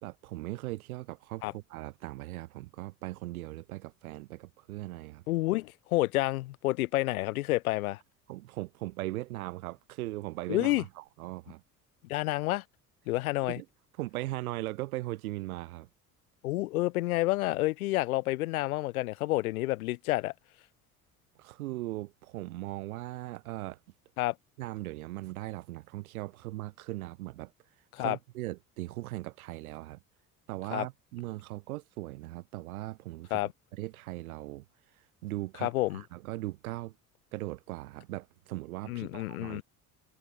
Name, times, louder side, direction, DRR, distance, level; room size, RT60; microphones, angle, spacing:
voice 1, 0.0-5.2 8.3-11.6 13.5-13.6 14.0-15.9 21.4-23.8 24.6-27.5 28.0-30.0 30.5-33.4 33.7-34.6 35.2-36.9 37.3-39.6, right 18 dB, 75° right, 3.2 m, -39 dB
voice 2, 5.3-8.0 10.5-10.8 12.0-12.6 13.1-13.6 16.4-20.3 24.2-24.3 27.9-28.2 30.7-30.9 33.3-33.5 35.6-36.0 38.9-39.6, left 18 dB, 75° left, 3.0 m, -29 dB
hypercardioid pair, 65°, 43 cm